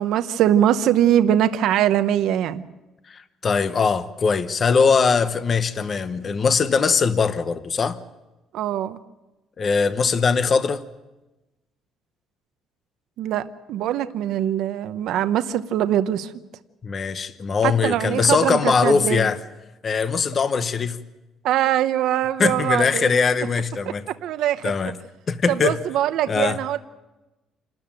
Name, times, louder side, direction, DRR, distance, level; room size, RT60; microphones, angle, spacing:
voice 1, 0.0-2.6 8.5-9.0 13.2-16.3 17.6-19.3 21.4-23.1 23.8-23.9 24.2-24.7 25.5-26.8, right 11 dB, 70° right, 11 dB, 1.0 m, -22 dB
voice 2, 3.1-8.0 9.6-10.8 16.8-19.4 19.8-21.0 22.4-24.0 24.6-24.9 25.3-25.8 26.3-26.6, left 5 dB, 30° left, 11 dB, 1.0 m, -21 dB
28.5 x 13.5 x 9.1 m, 1.0 s
cardioid pair, 155°, 0 cm